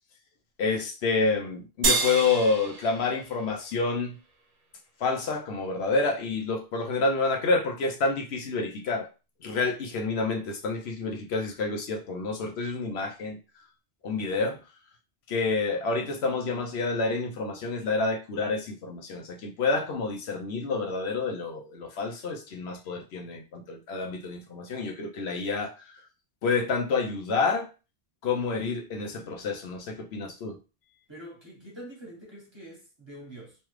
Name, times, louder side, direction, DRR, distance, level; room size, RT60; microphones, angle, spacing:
voice 1, 0.6-4.2 5.0-9.1 9.4-13.4 14.0-14.6 15.3-25.7 26.4-27.7 28.2-30.6, left 3 dB, 80° left, 0.9 m, -28 dB
sound 1, 1.8-4.4, right 3 dB, 55° right, 0.8 m, -30 dB
voice 2, 31.1-33.6, right 1 dB, 25° right, 1.3 m, -45 dB
3.2 x 2.3 x 3.1 m
omnidirectional pair, 1.1 m